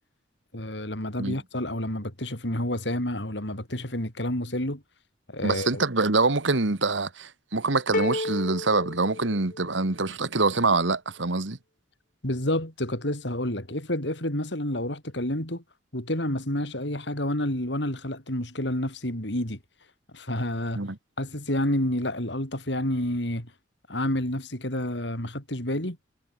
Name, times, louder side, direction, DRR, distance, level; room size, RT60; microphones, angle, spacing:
voice 1, 0.5-4.8 5.3-5.8 12.2-15.6 15.9-19.6 20.1-20.8 21.2-23.5 23.9-26.0, left 1 dB, 65° left, 6.2 m, -29 dB
voice 2, 5.4-11.6 20.7-21.0, right 3 dB, 80° right, 1.7 m, -25 dB
sound 1, 7.9-9.9, left 2 dB, 45° left, 3.7 m, -31 dB
head